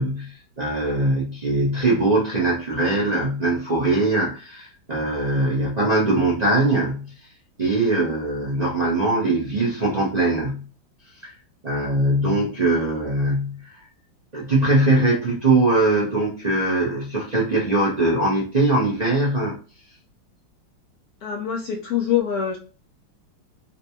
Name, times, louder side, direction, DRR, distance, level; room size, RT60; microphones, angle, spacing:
voice 1, 0.0-7.1 7.6-10.7 11.2-11.3 11.6-13.7 14.3-19.6, right 2 dB, 40° right, 0.6 m, -21 dB
voice 2, 21.2-22.6, left 9 dB, 75° left, 0.8 m, -24 dB
4.0 x 2.2 x 2.8 m
omnidirectional pair, 2.2 m